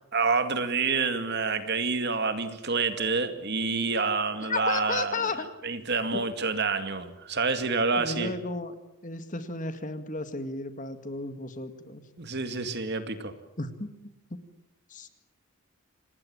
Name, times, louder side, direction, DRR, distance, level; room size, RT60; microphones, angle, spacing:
voice 1, 0.1-5.3 5.6-8.3 12.2-13.3, right 4 dB, 50° right, 9 dB, 2.3 m, -28 dB
voice 2, 4.5-5.5 6.1-6.2 8.0-8.7 9.0-12.0 13.6-13.9 14.9-15.1, left 3 dB, 35° left, 9 dB, 2.1 m, -33 dB
27.5 x 19.5 x 8.8 m, 0.91 s
head